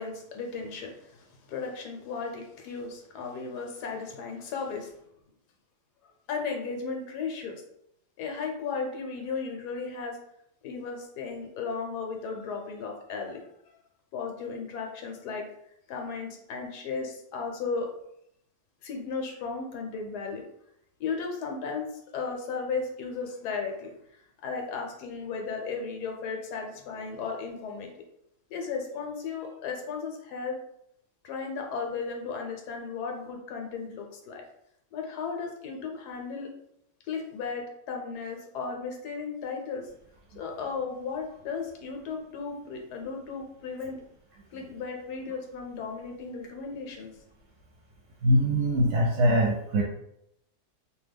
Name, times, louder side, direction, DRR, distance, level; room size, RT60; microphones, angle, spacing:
voice 1, 0.0-5.0 6.3-7.5 8.2-10.2 10.6-13.4 14.1-15.4 15.9-17.9 18.8-20.4 21.0-23.9 24.4-27.9 28.5-30.6 31.2-34.4 34.9-36.5 37.1-39.8 40.4-44.0 44.5-47.1, left 5 dB, 85° left, 2 dB, 1.2 m, -35 dB
voice 2, 48.2-49.8, equal, 80° right, -2 dB, 1.1 m, -22 dB
2.9 x 2.2 x 3.4 m, 0.75 s
omnidirectional pair, 1.7 m